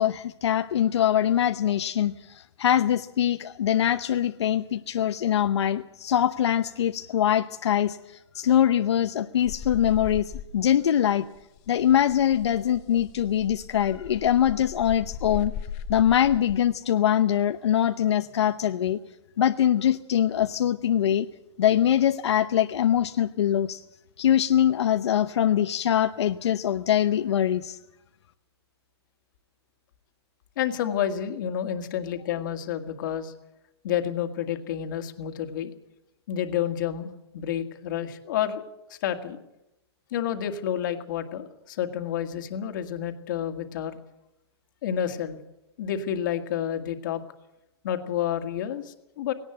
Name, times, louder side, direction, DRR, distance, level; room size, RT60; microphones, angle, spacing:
voice 1, 0.0-8.0 8.3-11.3 11.7-15.5 15.9-19.0 19.4-21.3 21.6-23.8 24.2-27.8, left 10 dB, 75° left, 8 dB, 0.9 m, -23 dB
sound 1, 9.5-10.9 11.1-16.6 18.3-18.8, left 8 dB, 20° left, 0.7 m, -38 dB
voice 2, 30.6-33.3 33.8-35.7 36.3-38.6 38.9-39.4 40.1-44.0 44.8-45.4 45.8-47.2 47.8-49.3, left 10 dB, 45° left, 6 dB, 2.0 m, -29 dB
18.5 x 18.0 x 7.9 m, 0.88 s
hypercardioid pair, 170°, 15 cm